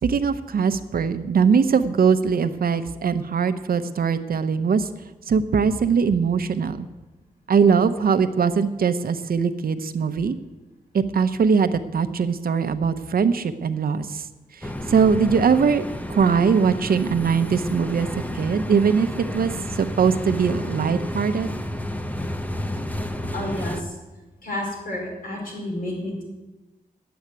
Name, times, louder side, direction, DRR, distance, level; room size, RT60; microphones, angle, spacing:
voice 1, 0.0-4.9 5.3-6.9 7.5-10.4 10.9-14.3 14.5-21.5, right 6 dB, 80° right, 11 dB, 0.8 m, -21 dB
sound 1, 14.6-23.8, left 1 dB, 10° left, 0.7 m, -31 dB
voice 2, 23.3-24.0 24.4-26.2, left 1 dB, 70° left, -2 dB, 4.8 m, -30 dB
10.5 x 7.9 x 9.6 m, 1.1 s
wide cardioid pair, 160°, 15 cm